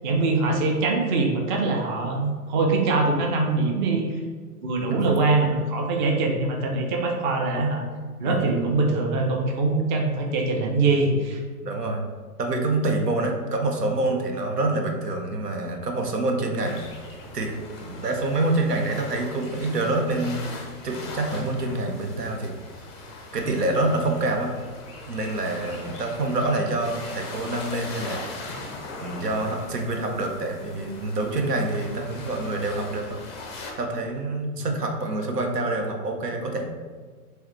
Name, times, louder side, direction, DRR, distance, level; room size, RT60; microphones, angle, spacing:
voice 1, 0.0-4.2 4.6-7.8 8.2-11.4 34.6-34.7, right 3 dB, 30° right, 1 dB, 0.5 m, -23 dB
voice 2, 11.6-12.1 12.4-16.8 17.3-20.4 20.8-22.6 23.3-24.5 25.1-28.2 29.0-33.2 33.8-36.6, right 2 dB, 80° right, 3 dB, 0.9 m, -26 dB
sound 1, 16.6-33.7, left 3 dB, 20° left, 0.4 m, -40 dB
4.7 x 3.0 x 3.2 m, 1.5 s
figure-of-eight pair, 120°, 47 cm